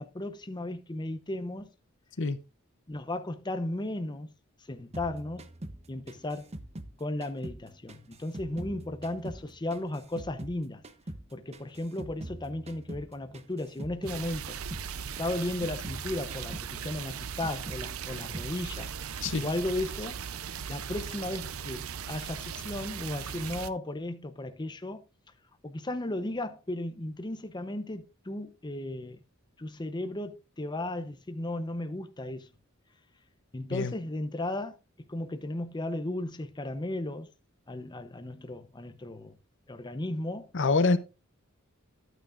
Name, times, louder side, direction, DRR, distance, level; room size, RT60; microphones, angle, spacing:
voice 1, 0.0-1.7 2.9-4.3 4.7-5.5 5.9-6.5 7.0-10.8 11.3-14.6 15.2-18.9 19.4-20.3 20.7-25.0 25.6-29.2 29.6-32.5 33.5-34.8 35.1-37.3 37.7-39.4 39.7-40.5, left 1 dB, 20° left, 0.7 m, -35 dB
sound 1, 4.9-7.6 7.9-10.6 10.8-14.2 14.5-14.9 15.2-17.9 18.1-18.5 18.8-19.5, right 1 dB, 30° right, 0.8 m, -43 dB
sound 2, 14.1-23.7, right 7 dB, 90° right, 0.6 m, -38 dB
voice 2, 40.5-41.0, left 3 dB, 60° left, 0.8 m, -25 dB
11.5 x 9.2 x 2.5 m
head